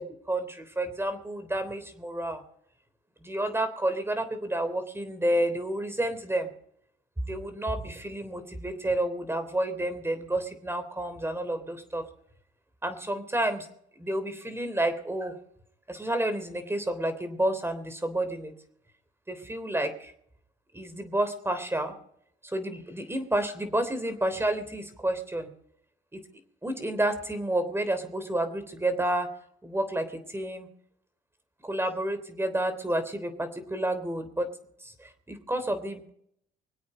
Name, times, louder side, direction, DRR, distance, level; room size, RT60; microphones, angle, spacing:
voice 1, 0.0-2.4 3.2-6.5 7.2-12.0 12.8-13.7 14.0-15.3 15.9-18.5 19.3-20.1 20.7-21.9 22.4-25.5 26.1-26.2 26.6-29.3 29.6-30.7 31.6-34.5 34.8-36.1, right 1 dB, 10° right, 9 dB, 3.4 m, -30 dB
25.5 x 8.5 x 5.2 m, 0.68 s
cardioid pair, 90°, 20 cm